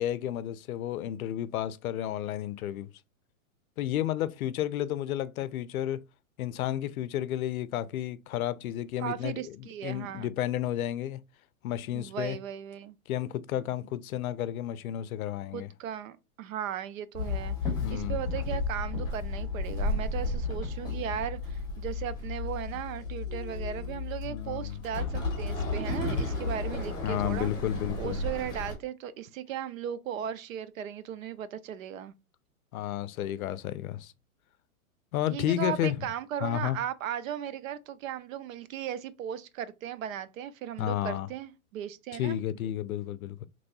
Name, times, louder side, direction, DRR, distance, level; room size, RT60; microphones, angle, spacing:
voice 1, 0.0-2.9 3.8-6.0 6.4-11.2 11.6-12.4 13.1-15.7 17.8-18.2 24.2-24.8 27.0-28.2 32.7-34.1 35.1-36.0 36.4-36.8 40.8-41.3 42.2-43.5, left 12 dB, 70° left, 0.5 m, -32 dB
voice 2, 9.0-10.3 11.9-13.0 15.5-27.5 28.0-32.1 35.3-42.4, right 9 dB, 65° right, 0.5 m, -37 dB
Walk footsteps / Chatter / Hiss, 17.1-28.7, left 3 dB, 10° left, 1.4 m, -33 dB
3.0 x 2.6 x 3.9 m
hypercardioid pair, 155°, 44 cm